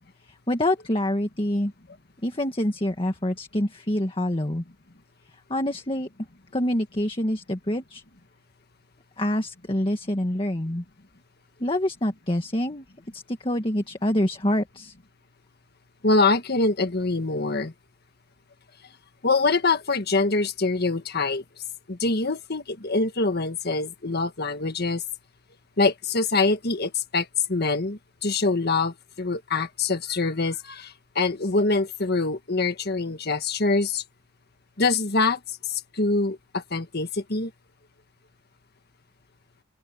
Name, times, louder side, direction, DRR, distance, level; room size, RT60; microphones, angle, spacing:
voice 1, 0.3-1.7 2.2-4.6 5.3-6.1 6.5-8.0 9.2-10.8 11.6-12.8 13.1-14.9, left 1 dB, 25° left, 1.7 m, -26 dB
voice 2, 16.0-17.7 19.2-21.4 21.9-25.0 25.8-34.0 34.8-37.5, left 3 dB, 55° left, 1.6 m, -24 dB
open air
head